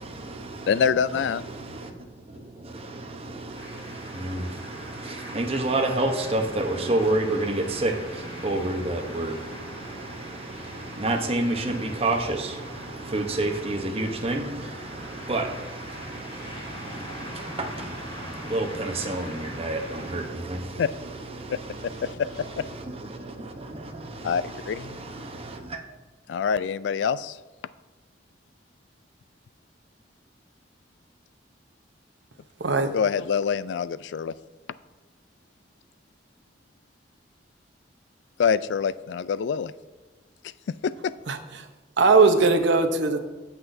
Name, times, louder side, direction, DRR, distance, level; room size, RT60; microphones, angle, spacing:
voice 1, 0.0-25.8, right 2 dB, 35° right, 0.9 m, -30 dB
voice 2, 0.6-1.4 20.8-20.9 21.5-21.6 22.0-22.7 24.2-25.0 26.3-27.4 32.9-34.3 38.4-39.7 40.7-41.1, left 6 dB, 80° left, 0.3 m, -25 dB
sound 1, 3.5-20.3, equal, 30° left, 2.1 m, -41 dB
voice 3, 42.0-43.2, right 4 dB, 85° right, 0.8 m, -19 dB
16.5 x 5.9 x 2.7 m
head